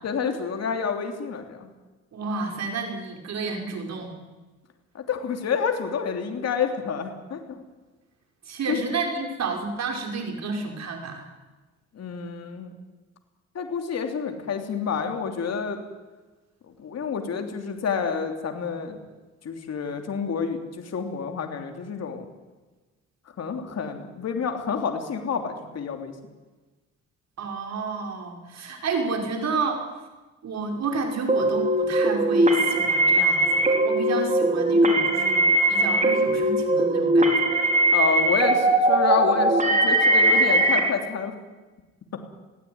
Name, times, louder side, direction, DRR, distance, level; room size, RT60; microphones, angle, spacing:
voice 1, 0.0-1.7 4.9-7.6 8.7-8.8 11.9-12.7 13.5-15.8 16.8-19.0 19.4-22.3 23.4-26.1 37.9-41.3, left 6 dB, 55° left, 4 dB, 3.3 m, -29 dB
voice 2, 2.1-4.2 8.5-11.2 27.4-29.8 30.4-37.6, right 4 dB, 60° right, 3 dB, 5.6 m, -31 dB
sound 1, 31.3-40.8, right 1 dB, 25° right, 5.0 m, -20 dB
21.5 x 16.5 x 9.8 m, 1.2 s
cardioid pair, 90°, 30 cm